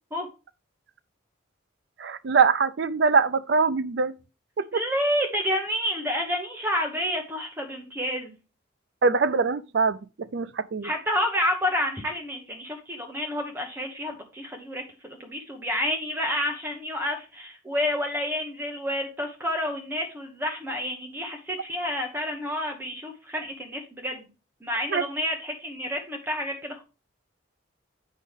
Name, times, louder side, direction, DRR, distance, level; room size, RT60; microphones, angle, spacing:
voice 1, 2.0-4.1 4.6-4.8 9.0-10.9 24.9-25.0, right 5 dB, 65° right, 0.4 m, -23 dB
voice 2, 4.7-8.3 10.8-24.3 24.6-26.8, left 1 dB, 10° right, 1.1 m, -29 dB
8.2 x 5.2 x 3.6 m
head